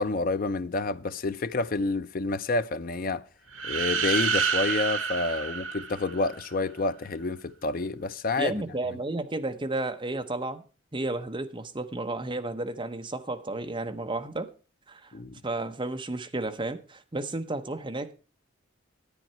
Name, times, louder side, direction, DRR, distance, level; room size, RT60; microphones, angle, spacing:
voice 1, 0.0-3.2 3.6-8.5 15.1-15.4, left 3 dB, 45° left, 0.5 m, -29 dB
sound 1, 3.5-6.5, right 6 dB, 80° right, 0.9 m, -28 dB
voice 2, 8.4-10.6 10.9-14.5 14.9-15.1 15.4-18.1, right 2 dB, 25° right, 0.8 m, -32 dB
10.5 x 9.2 x 4.4 m
head